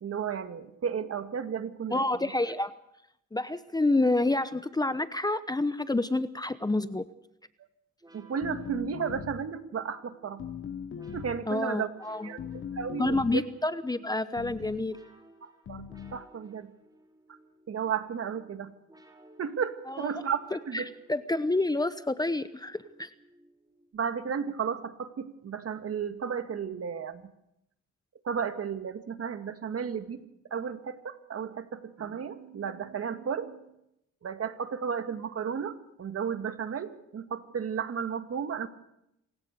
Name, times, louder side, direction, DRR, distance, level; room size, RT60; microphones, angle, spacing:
voice 1, 0.0-2.3 8.1-10.4 11.1-11.9 12.2-12.4 12.7-13.4 15.4-16.7 17.3-17.4 17.7-18.7 19.4-20.9 23.9-27.3 28.2-30.2 30.5-33.7 34.2-38.7, right 7 dB, 50° right, 8 dB, 2.1 m, -33 dB
voice 2, 1.9-2.7 3.3-7.1 11.5-12.3 13.0-15.0 19.9-20.1 20.5-23.1, left 2 dB, 15° left, 13 dB, 1.0 m, -28 dB
sound 1, 8.0-24.2, right 1 dB, 15° right, 5.2 m, -58 dB
sound 2, 8.4-9.5 10.4-11.5 12.4-13.5 14.4-14.9 15.7-16.2, left 8 dB, 45° left, 0.9 m, -40 dB
27.0 x 16.5 x 6.8 m, 0.80 s
cardioid pair, 90°, 30 cm